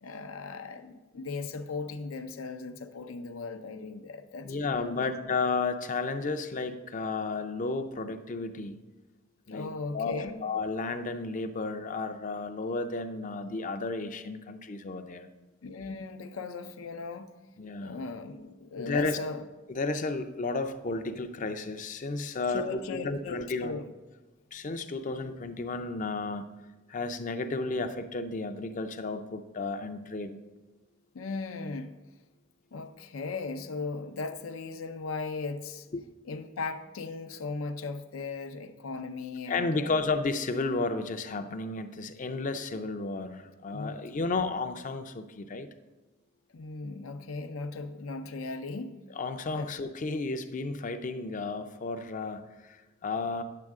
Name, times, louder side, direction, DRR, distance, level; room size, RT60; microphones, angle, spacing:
voice 1, 0.0-5.1 9.5-10.4 15.6-17.4 17.8-19.4 22.5-23.9 31.1-32.0 32.7-35.9 36.2-40.1 43.7-44.0 46.5-49.0 49.5-49.7, left 4 dB, 85° left, 8 dB, 0.6 m, -37 dB
voice 2, 4.4-8.8 9.5-15.3 17.6-18.0 18.8-19.2 19.7-23.8 24.5-26.5 26.9-30.4 35.9-36.1 39.5-45.7 49.2-53.4, left 3 dB, 40° left, 8 dB, 0.5 m, -33 dB
9.5 x 7.6 x 3.6 m, 1.2 s
head